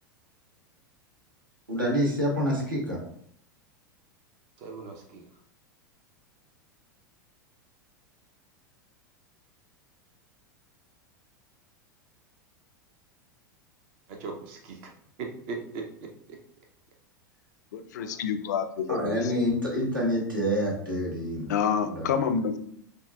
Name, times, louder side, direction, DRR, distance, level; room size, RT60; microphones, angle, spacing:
voice 1, 1.7-3.0 18.9-21.5 21.9-22.1, equal, 85° right, 1.2 m, -27 dB
voice 2, 4.6-5.2 14.1-14.9 15.2-16.4, right 4 dB, 45° right, 0.6 m, -39 dB
voice 3, 17.7-19.2 21.5-22.6, left 7 dB, 60° left, 0.4 m, -28 dB
6.3 x 2.3 x 2.3 m
figure-of-eight pair, 85°, 11 cm